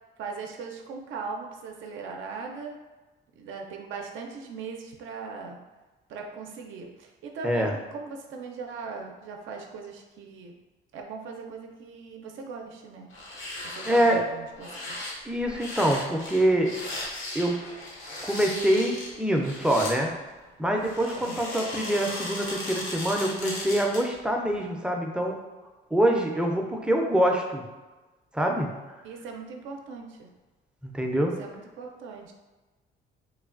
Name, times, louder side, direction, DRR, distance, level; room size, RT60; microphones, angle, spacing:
voice 1, 0.2-2.8 3.4-5.6 6.1-10.5 10.9-13.1 13.6-15.0 21.1-21.4 29.0-30.3 31.4-32.3, right 4 dB, 80° right, 2 dB, 0.4 m, -39 dB
sound 1, 13.1-14.1 14.5-20.0 20.8-24.2 24.5-24.6, left 1 dB, 80° left, 0.9 m, -37 dB
voice 2, 13.9-14.2 15.3-16.7 17.3-17.6 18.2-20.1 20.6-25.4 25.9-27.6 28.3-28.7 30.8-31.4, right 1 dB, 5° right, 1 dB, 0.4 m, -25 dB
3.1 x 2.2 x 2.4 m, 1.2 s
cardioid pair, 90°, 20 cm